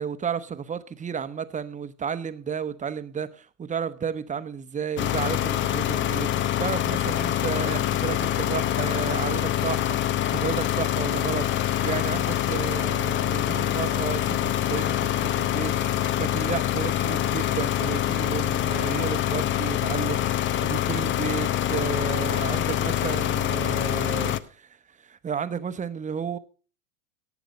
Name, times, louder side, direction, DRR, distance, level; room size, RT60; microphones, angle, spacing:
voice 1, 0.0-26.4, right 7 dB, 15° right, 1.0 m, -33 dB
sound 1, 5.0-24.4, left 11 dB, 30° left, 0.7 m, -25 dB
18.0 x 7.2 x 5.3 m
hypercardioid pair, 100°, 42 cm